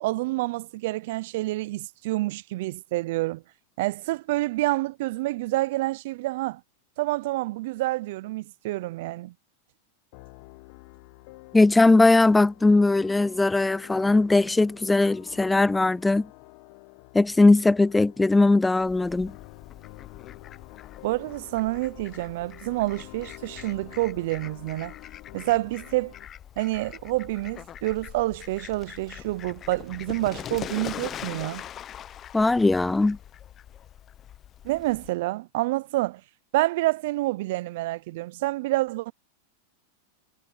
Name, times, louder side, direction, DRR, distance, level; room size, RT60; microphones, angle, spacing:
voice 1, 0.0-3.4 3.8-6.6 7.0-9.3 21.0-24.9 25.3-26.1 26.6-31.6 34.6-36.2 36.5-39.1, right 19 dB, 65° right, 0.4 m, -28 dB
sound 1, 10.1-26.3, left 22 dB, 55° left, 1.4 m, -49 dB
voice 2, 11.5-16.3 17.1-19.3 32.3-33.2, left 2 dB, 10° left, 0.4 m, -19 dB
Fowl, 18.8-35.1, left 10 dB, 30° left, 0.9 m, -43 dB
hypercardioid pair, 125°, 0 cm